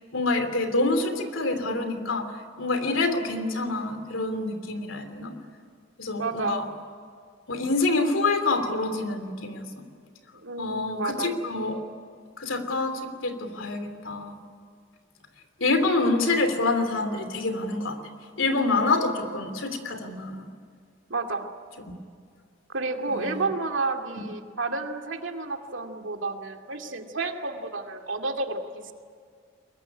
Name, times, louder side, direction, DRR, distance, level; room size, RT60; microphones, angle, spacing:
voice 1, 0.1-2.3 2.6-5.4 6.0-6.7 7.5-9.8 10.6-11.8 12.4-14.4 15.6-18.0 18.4-20.5 23.1-23.5, left 3 dB, 80° left, 7 dB, 3.0 m, -26 dB
voice 2, 6.2-6.6 10.4-11.3 21.1-21.5 22.7-28.9, right 3 dB, 70° right, 5 dB, 2.4 m, -31 dB
23.5 x 22.0 x 9.8 m, 2.1 s
head